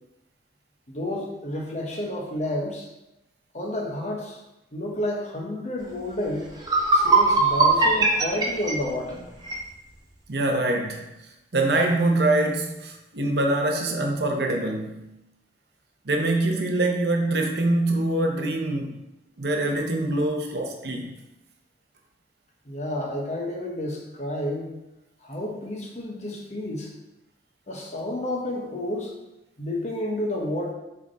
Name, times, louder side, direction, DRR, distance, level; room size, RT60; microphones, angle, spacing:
voice 1, 0.9-2.9 3.5-4.4 4.7-6.5 6.9-9.2 22.7-24.7 25.2-26.9 27.7-29.1 29.6-30.7, left 1 dB, 35° left, -1 dB, 1.2 m, -30 dB
sound 1, 6.1-6.2 6.6-9.6, right 3 dB, 20° right, 0.9 m, -20 dB
voice 2, 10.3-11.1 11.5-15.1 16.0-19.0 19.4-21.1, right 2 dB, 60° right, 2 dB, 0.8 m, -24 dB
6.7 x 3.7 x 4.1 m, 0.92 s
head